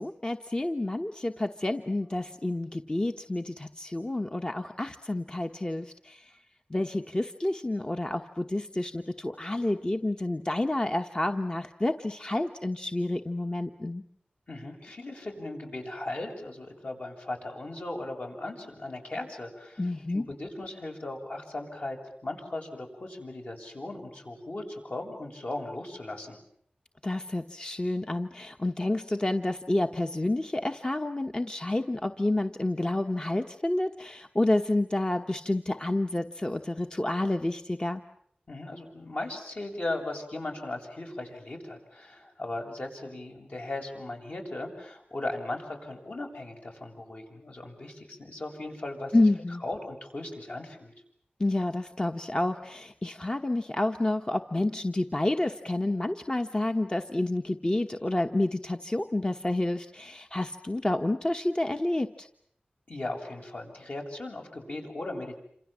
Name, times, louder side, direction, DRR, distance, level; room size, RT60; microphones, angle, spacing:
voice 1, 0.0-6.4 6.7-14.0 19.8-20.3 27.0-38.0 49.1-49.6 51.4-62.3, left 1 dB, 30° left, 5 dB, 1.2 m, -29 dB
voice 2, 14.5-22.0 22.2-26.4 38.5-49.1 49.6-50.9 62.9-65.4, left 2 dB, 60° left, 1 dB, 7.6 m, -37 dB
28.5 x 27.0 x 7.5 m, 0.68 s
wide cardioid pair, 75°, 3 cm